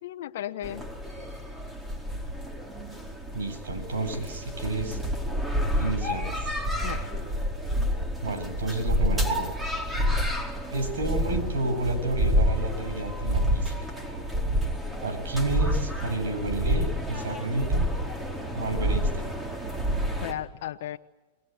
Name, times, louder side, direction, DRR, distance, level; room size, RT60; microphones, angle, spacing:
voice 1, 0.0-0.9 6.8-7.1 20.2-21.0, left 12 dB, 65° left, 4 dB, 1.0 m, -35 dB
sound 1, 0.6-20.3, equal, 15° right, 4.7 m, -29 dB
voice 2, 3.3-5.0 5.8-6.6 8.2-9.5 10.7-13.9 15.0-17.9 18.5-19.3, right 2 dB, 85° right, 8 dB, 8.0 m, -31 dB
29.0 x 21.0 x 9.5 m, 1.1 s
hypercardioid pair, 130°, 0 cm